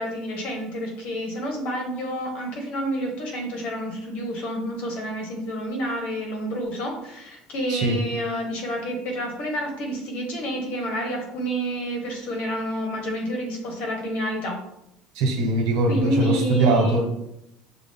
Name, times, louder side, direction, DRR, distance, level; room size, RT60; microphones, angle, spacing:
voice 1, 0.0-14.5 15.9-17.0, equal, 60° left, 1 dB, 1.4 m, -29 dB
voice 2, 15.1-17.0, right 2 dB, 80° right, 2 dB, 1.1 m, -21 dB
6.2 x 2.3 x 3.6 m, 0.82 s
supercardioid pair, 115°, 3 cm